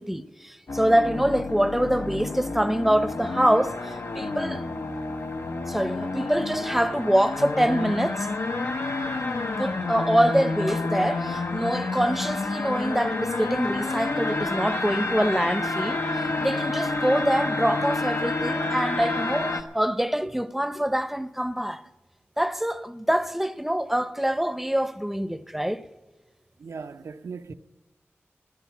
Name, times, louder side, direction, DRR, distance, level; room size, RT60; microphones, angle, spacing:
voice 1, 0.0-4.6 5.7-8.3 9.6-21.8 22.4-25.9, equal, 5° right, 0.7 m, -25 dB
sound 1, 0.7-19.6, left 3 dB, 75° left, 0.9 m, -29 dB
voice 2, 26.6-27.5, right 5 dB, 90° right, 0.6 m, -39 dB
15.5 x 10.5 x 6.1 m
wide cardioid pair, 55°, 5 cm